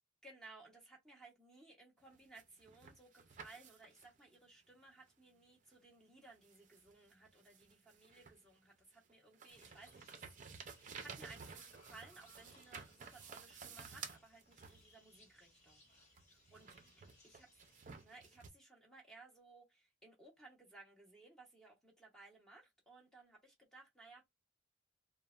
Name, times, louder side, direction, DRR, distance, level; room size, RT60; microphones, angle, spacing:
voice 1, 0.2-10.2 10.9-17.6 18.0-24.3, right 3 dB, ahead, 0.8 m, -60 dB
sound 1, 2.1-4.2 5.7-5.8 6.4-8.6 8.9-15.2 16.2-18.5, right 5 dB, 40° right, 0.5 m, -53 dB
sound 2, 9.5-18.1, left 2 dB, 35° left, 1.1 m, -68 dB
3.1 x 2.1 x 2.3 m
head